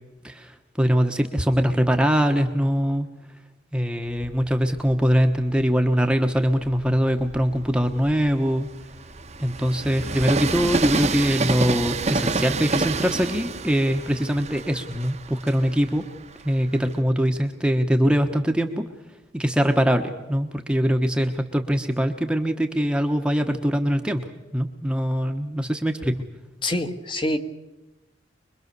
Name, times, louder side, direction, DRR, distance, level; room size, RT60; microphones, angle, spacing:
voice 1, 0.2-3.1 3.7-8.7 9.4-16.0 16.4-18.8 19.3-24.2 24.5-26.1, equal, 5° right, 4 dB, 1.2 m, -22 dB
Train, 4.1-5.8 6.4-17.0, right 3 dB, 35° right, 1.0 m, -29 dB
voice 2, 26.6-27.4, left 1 dB, 25° left, 6 dB, 1.6 m, -25 dB
24.5 x 22.5 x 6.9 m, 1.0 s
head